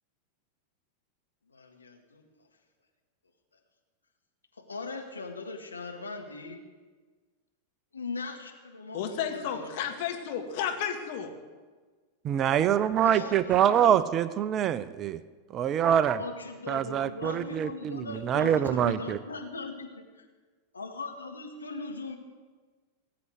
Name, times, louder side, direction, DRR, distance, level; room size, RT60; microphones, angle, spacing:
voice 1, 1.5-2.2 4.6-6.7 7.9-9.7 13.0-14.1 16.0-20.0 20.7-22.2, left 3 dB, 75° left, 3 dB, 1.8 m, -39 dB
voice 2, 8.9-11.3, left 8 dB, 50° left, 4 dB, 2.0 m, -32 dB
voice 3, 12.2-15.2 15.5-16.2 16.7-19.2, right 9 dB, 30° right, 15 dB, 0.6 m, -25 dB
18.5 x 7.8 x 7.7 m, 1.4 s
figure-of-eight pair, 90°, 0 cm